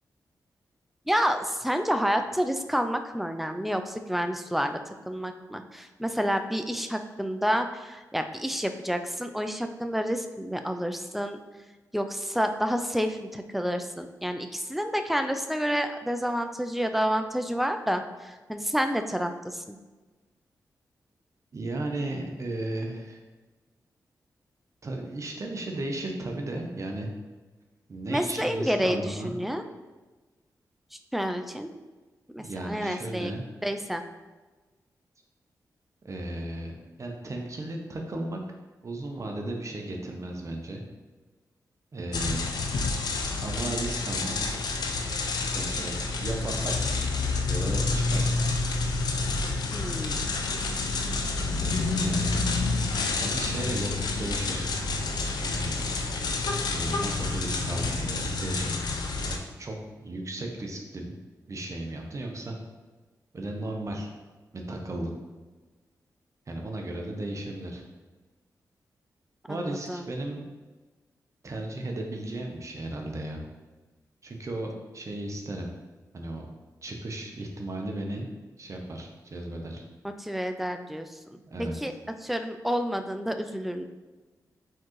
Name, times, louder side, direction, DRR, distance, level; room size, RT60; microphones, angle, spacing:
voice 1, 1.1-11.4 11.9-19.8 28.1-29.6 31.1-31.7 32.3-33.3 33.6-34.0 49.7-50.3 69.5-70.1 80.0-81.9 82.2-83.8, equal, ahead, 7 dB, 0.4 m, -29 dB
voice 2, 21.5-23.2 24.8-27.1 27.9-29.3 32.4-33.4 36.0-38.4 38.8-40.8 41.9-42.5 43.4-44.4 45.5-47.1 47.5-48.4 52.0-52.5 53.2-54.7 55.3-55.7 56.7-58.7 59.2-61.1 61.5-62.6 63.3-64.1 64.5-65.1 66.5-67.8 69.5-70.4 71.4-73.4 74.2-75.7 76.1-76.5 76.8-78.3 78.6-79.8 81.5-81.7, right 1 dB, 50° right, 2 dB, 0.8 m, -35 dB
sound 1, 42.1-59.4, left 3 dB, 80° left, 0.5 m, -28 dB
4.4 x 3.8 x 3.1 m, 1.3 s
cardioid pair, 60°, 7 cm